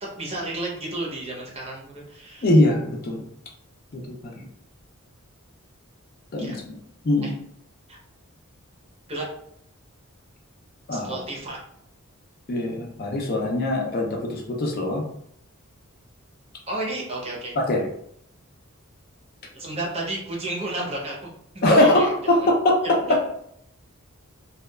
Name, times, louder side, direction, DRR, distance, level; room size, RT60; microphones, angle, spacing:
voice 1, 0.0-2.5 6.4-6.6 7.2-7.3 7.9-8.0 9.1-9.2 10.9-11.6 16.7-17.6 19.5-21.2 21.7-22.5 23.0-23.1, right 2 dB, 30° right, -3 dB, 0.6 m, -32 dB
voice 2, 2.4-3.2 3.9-4.3 6.3-6.7 7.0-7.3 10.9-11.2 12.5-15.0 17.6-17.9 21.6-23.2, left 1 dB, 45° left, 0 dB, 0.4 m, -22 dB
2.7 x 2.3 x 2.2 m, 0.71 s
head